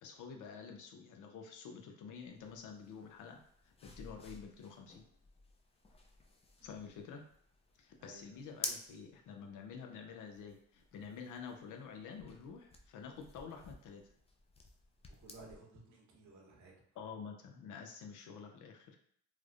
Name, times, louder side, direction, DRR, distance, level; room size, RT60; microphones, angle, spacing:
voice 1, 0.0-3.4 3.6-5.0 6.6-7.2 7.8-14.0 17.0-19.0, left 6 dB, 80° left, 3 dB, 0.6 m, -49 dB
sound 1, 2.1-15.6, left 2 dB, 20° left, 0.4 m, -52 dB
voice 2, 8.0-8.4 15.1-16.7, right 2 dB, 70° right, -1 dB, 0.9 m, -57 dB
3.2 x 2.0 x 2.4 m, 0.66 s
cardioid pair, 90°, 30 cm